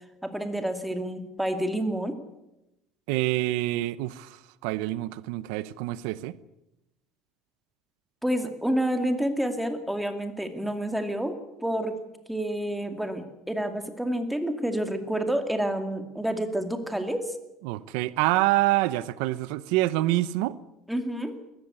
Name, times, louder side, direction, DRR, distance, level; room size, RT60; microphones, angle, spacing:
voice 1, 0.2-2.2 8.2-11.9 12.3-17.4 20.9-21.3, right 1 dB, 5° right, 7 dB, 2.3 m, -29 dB
voice 2, 3.1-6.4 17.6-20.6, right 17 dB, 85° right, 17 dB, 0.8 m, -26 dB
21.5 x 14.5 x 9.8 m, 0.93 s
cardioid pair, 145°, 0 cm